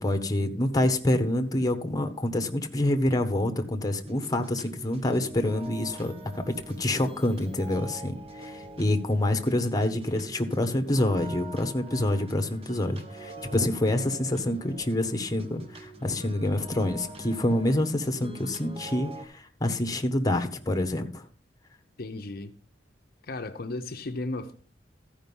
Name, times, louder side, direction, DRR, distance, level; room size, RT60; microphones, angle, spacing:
voice 1, 0.0-21.2, left 1 dB, 20° left, 1.1 m, -27 dB
sound 1, 4.0-19.2, right 1 dB, 35° right, 1.2 m, -44 dB
voice 2, 22.0-22.5 23.3-24.6, left 2 dB, 55° left, 0.7 m, -35 dB
14.0 x 5.1 x 5.4 m
head